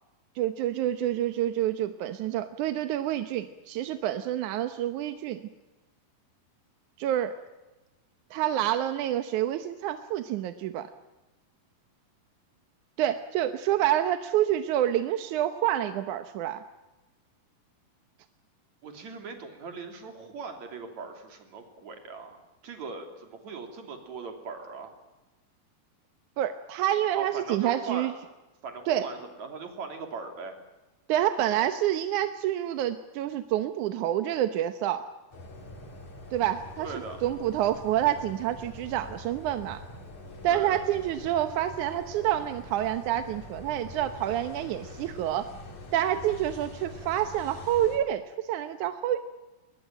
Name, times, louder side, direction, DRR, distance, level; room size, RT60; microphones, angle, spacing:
voice 1, 0.4-5.4 7.0-7.4 8.3-10.9 13.0-16.6 26.4-28.1 28.9-29.1 31.1-35.0 36.3-36.9 37.2-39.8 40.4-45.5 45.9-49.2, right 12 dB, 70° right, 10 dB, 2.0 m, -28 dB
voice 2, 18.8-22.4 22.6-24.9 27.1-28.1 28.6-30.5 36.8-37.2 40.5-40.8, right 4 dB, 50° right, 5 dB, 4.2 m, -39 dB
sound 1, 35.3-48.0, left 1 dB, 50° left, 4.7 m, -44 dB
23.0 x 20.0 x 9.1 m, 1.1 s
omnidirectional pair, 4.3 m